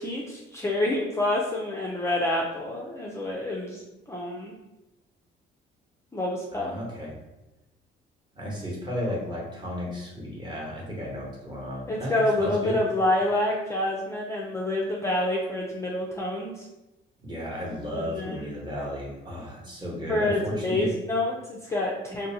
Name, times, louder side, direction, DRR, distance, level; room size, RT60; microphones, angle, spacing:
voice 1, 0.0-3.8 4.1-4.5 6.1-6.7 11.9-16.7 17.9-18.5 20.1-22.3, left 1 dB, 15° left, -4 dB, 0.4 m, -27 dB
voice 2, 6.5-7.1 8.3-12.8 17.2-20.9, equal, 20° right, -4 dB, 1.0 m, -34 dB
2.6 x 2.1 x 2.7 m, 0.98 s
cardioid pair, 90°, 20 cm